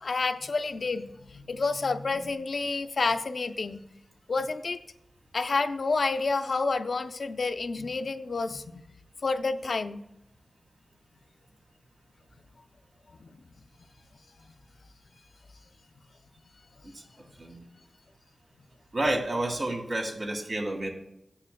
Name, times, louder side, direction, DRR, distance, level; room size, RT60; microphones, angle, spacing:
voice 1, 0.0-3.8 4.3-4.8 5.3-8.8 9.2-10.0, left 3 dB, 65° left, 8 dB, 0.5 m, -29 dB
voice 2, 18.9-20.9, right 1 dB, 60° right, 1 dB, 1.8 m, -29 dB
13.5 x 9.8 x 2.3 m, 0.80 s
wide cardioid pair, 80°, 0 cm